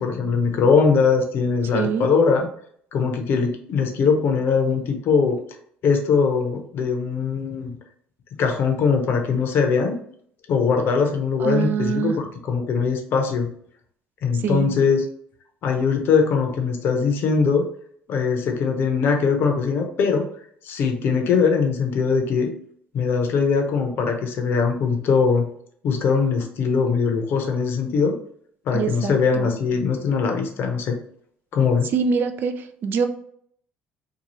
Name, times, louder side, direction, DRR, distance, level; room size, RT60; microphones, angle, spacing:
voice 1, 0.0-2.5 2.9-5.4 5.8-7.7 8.4-10.0 10.5-13.5 14.2-15.0 15.6-17.6 18.1-20.2 20.6-22.5 22.9-25.4 25.8-28.2 28.7-31.0 31.5-31.9, left 5 dB, 60° left, 4 dB, 0.7 m, -21 dB
voice 2, 1.7-2.1 11.4-12.1 14.4-14.7 28.7-29.5 31.9-32.5 32.8-33.1, right 6 dB, 50° right, 8 dB, 0.4 m, -24 dB
2.7 x 2.3 x 2.9 m, 0.64 s
hypercardioid pair, 70°, 4 cm